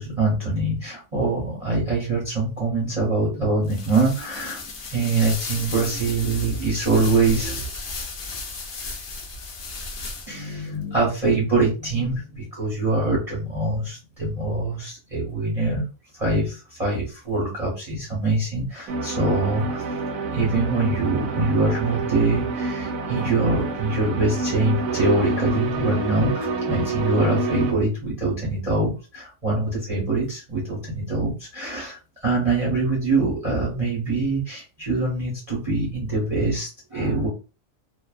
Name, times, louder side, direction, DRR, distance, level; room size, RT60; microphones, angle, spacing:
voice 1, 0.0-7.7 10.3-15.9 16.1-19.9 20.3-37.3, right 3 dB, 35° right, -4 dB, 0.7 m, -24 dB
sound 1, 3.6-10.5, left 3 dB, 70° left, 0.5 m, -34 dB
sound 2, 18.9-27.7, right 3 dB, 80° right, 1.1 m, -27 dB
2.5 x 2.1 x 2.4 m, 0.32 s
omnidirectional pair, 1.6 m